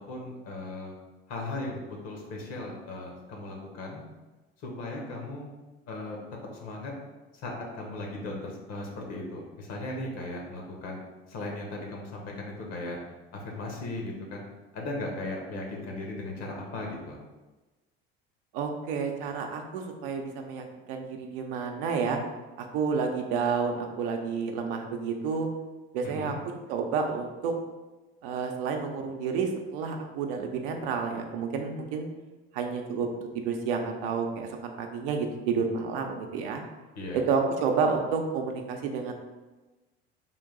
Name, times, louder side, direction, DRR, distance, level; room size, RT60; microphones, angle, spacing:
voice 1, 0.1-0.9 1.3-4.0 4.6-5.5 5.9-6.2 6.6-6.9 7.4-11.0 11.3-13.0 13.3-14.5 14.7-17.2 26.0-26.4 36.9-37.3, left 2 dB, 55° left, 0 dB, 1.2 m, -37 dB
voice 2, 18.5-22.2 22.6-25.5 25.9-26.3 26.7-27.5 28.2-32.1 32.5-36.6 37.1-39.1, right 5 dB, 70° right, 3 dB, 0.7 m, -30 dB
3.7 x 2.6 x 3.8 m, 1.2 s
hypercardioid pair, 75°, 30 cm